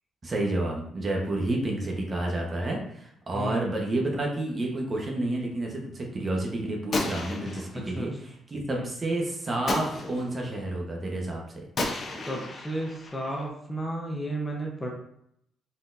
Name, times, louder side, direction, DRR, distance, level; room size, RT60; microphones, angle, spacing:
voice 1, 0.2-11.4, right 1 dB, 35° right, -1 dB, 1.1 m, -30 dB
voice 2, 3.3-3.7 7.7-8.1 8.7-8.9 12.2-14.9, right 1 dB, 15° left, -1 dB, 0.9 m, -33 dB
Gunshot gunfire, 6.9-8.0 9.7-10.5 11.8-13.5, left 2 dB, 50° left, 0.8 m, -33 dB
4.2 x 3.7 x 2.6 m, 0.72 s
cardioid pair, 90°, 0 cm